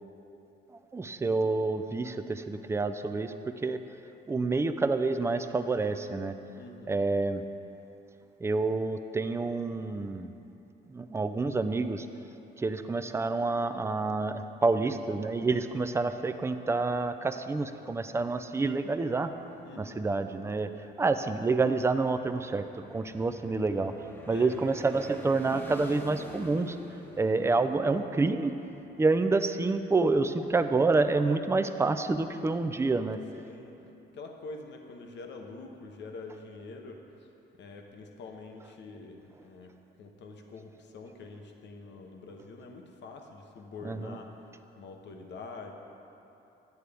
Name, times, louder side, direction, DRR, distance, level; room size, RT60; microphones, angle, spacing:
voice 1, 0.9-3.8 4.3-6.3 6.9-7.4 8.4-10.3 10.9-12.1 12.6-19.3 19.8-26.8 27.2-28.5 29.0-33.2 43.8-44.2, right 3 dB, 15° right, 9 dB, 0.3 m, -28 dB
voice 2, 6.5-7.1 19.6-20.1 24.3-24.6 33.3-33.7 34.1-37.0 37.5-44.3 44.8-45.7, left 3 dB, 65° left, 3 dB, 0.9 m, -45 dB
sound 1, 16.7-31.1, left 1 dB, 10° left, 0.9 m, -51 dB
9.3 x 8.1 x 3.4 m, 2.9 s
cardioid pair, 90°, 20 cm